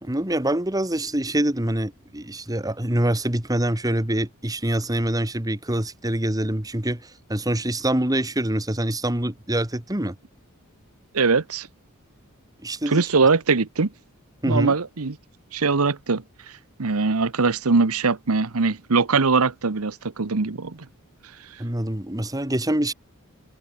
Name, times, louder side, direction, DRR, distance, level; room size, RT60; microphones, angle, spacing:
voice 1, 0.0-10.2 12.6-13.0 14.4-14.7 21.6-22.9, right 1 dB, 15° right, 1.8 m, -25 dB
voice 2, 11.1-11.7 12.9-13.9 14.5-15.2 15.5-16.2 16.8-20.8, right 4 dB, 80° right, 1.0 m, -21 dB
head